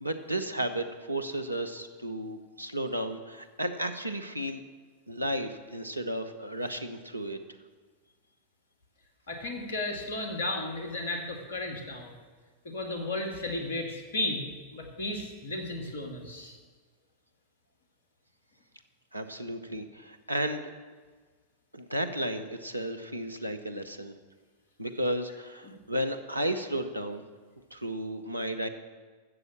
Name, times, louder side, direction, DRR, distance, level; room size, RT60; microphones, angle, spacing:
voice 1, 0.0-4.6 5.1-7.4 19.1-20.6 21.7-24.1 24.8-27.2 27.7-28.7, right 1 dB, 85° right, 8 dB, 0.9 m, -33 dB
voice 2, 9.3-12.1 12.6-16.6 25.6-25.8, left 2 dB, 60° left, 3 dB, 2.3 m, -34 dB
13.0 x 7.9 x 7.4 m, 1.4 s
figure-of-eight pair, 90°, 0 cm